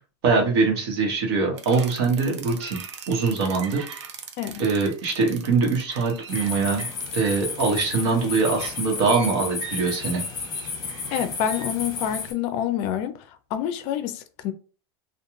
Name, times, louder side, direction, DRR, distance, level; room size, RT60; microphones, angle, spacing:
voice 1, 0.2-2.8 3.1-3.8 4.6-6.9 7.1-10.2, right 4 dB, 65° right, 1.0 m, -23 dB
sound 1, 1.6-11.6, right 7 dB, 85° right, 0.6 m, -41 dB
sound 2, 6.3-12.3, left 5 dB, 30° left, 0.9 m, -33 dB
voice 2, 11.1-14.5, left 10 dB, 50° left, 0.4 m, -27 dB
2.3 x 2.2 x 3.0 m
supercardioid pair, 120°, 14 cm